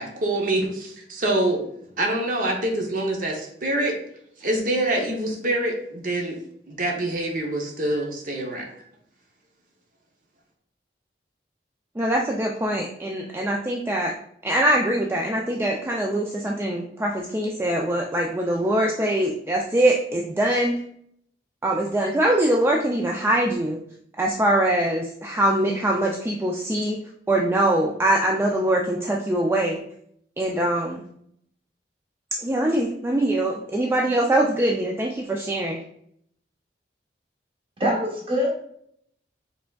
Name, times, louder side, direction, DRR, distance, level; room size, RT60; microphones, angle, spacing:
voice 1, 0.0-1.6 2.0-4.0 4.4-6.4 6.7-8.7, right 1 dB, 50° right, 1 dB, 0.7 m, -25 dB
voice 2, 12.0-14.1 14.4-20.8 21.6-23.8 24.2-27.0 27.3-29.8 30.4-31.0 32.3-35.8, right 1 dB, 15° right, -1 dB, 0.3 m, -23 dB
voice 3, 37.8-38.5, equal, 30° right, -1 dB, 1.0 m, -23 dB
5.0 x 3.3 x 2.3 m, 0.68 s
head